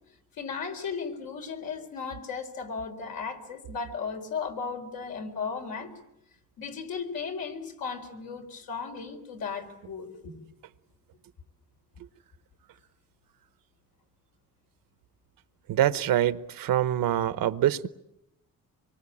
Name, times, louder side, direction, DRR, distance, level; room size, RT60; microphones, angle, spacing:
voice 1, 0.4-5.9 6.6-10.3, left 5 dB, 85° left, 4.1 m, -35 dB
voice 2, 15.7-17.9, right 12 dB, 80° right, 1.0 m, -25 dB
25.5 x 24.0 x 8.6 m
cardioid pair, 100°, 34 cm